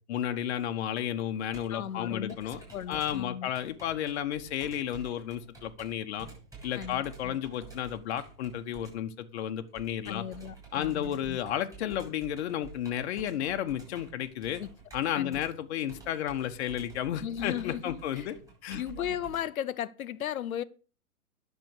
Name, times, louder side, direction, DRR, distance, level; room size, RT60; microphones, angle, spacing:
voice 1, 0.1-2.6 2.9-6.3 6.6-10.2 10.7-14.6 14.9-18.3 18.6-19.1, left 10 dB, 45° left, 1.3 m, -32 dB
Computer keyboard, 0.6-19.4, right 5 dB, 5° right, 7.2 m, -50 dB
voice 2, 1.7-3.5 6.7-7.4 10.1-11.4 14.6-14.7 15.1-15.4 17.2-18.3 18.7-20.6, left 10 dB, 65° left, 0.9 m, -36 dB
10.5 x 7.0 x 6.6 m
figure-of-eight pair, 120°, 45 cm